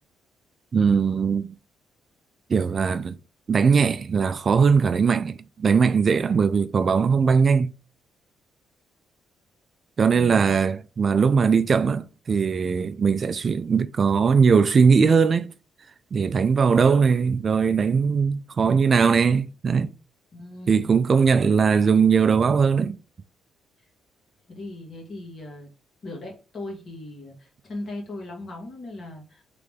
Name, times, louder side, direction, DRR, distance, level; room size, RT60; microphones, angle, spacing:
voice 1, 0.7-1.5 2.5-3.2 3.5-7.7 10.0-15.5 16.1-19.9 20.7-23.0, right 5 dB, 45° right, 0.3 m, -20 dB
voice 2, 10.1-10.6 20.3-21.4 24.5-25.7 26.0-29.4, left 2 dB, 50° left, 2.0 m, -38 dB
3.7 x 3.6 x 3.5 m
cardioid pair, 90°, 0 cm